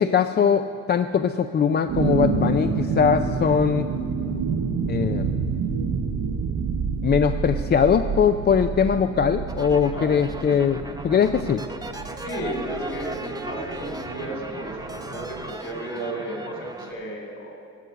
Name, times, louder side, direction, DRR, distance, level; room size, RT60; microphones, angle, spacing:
voice 1, 0.0-3.9 4.9-5.3 7.0-11.7, left 7 dB, 35° left, 9 dB, 0.4 m, -21 dB
sound 1, 1.9-15.5, right 5 dB, 70° right, 1.0 m, -29 dB
sound 2, 9.5-16.9, right 2 dB, 10° right, 1.0 m, -36 dB
voice 2, 9.9-10.3 12.2-17.7, right 1 dB, 50° left, 1 dB, 3.5 m, -34 dB
12.5 x 7.8 x 6.9 m, 2.5 s
cardioid pair, 90°, 30 cm